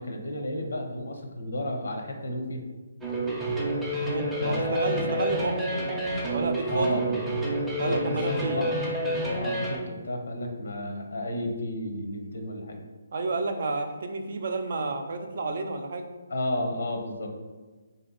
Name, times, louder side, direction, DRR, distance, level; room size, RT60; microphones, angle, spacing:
voice 1, 0.0-2.6 4.4-5.1 6.7-7.3 7.8-12.8 16.3-17.4, left 1 dB, 80° left, 3 dB, 0.8 m, -32 dB
sound 1, 3.0-9.8, right 1 dB, 5° right, 0.6 m, -29 dB
voice 2, 4.1-7.0 7.8-8.8 13.1-16.0, right 3 dB, 55° right, 5 dB, 0.5 m, -31 dB
3.3 x 2.8 x 3.7 m, 1.3 s
hypercardioid pair, 160°, 0 cm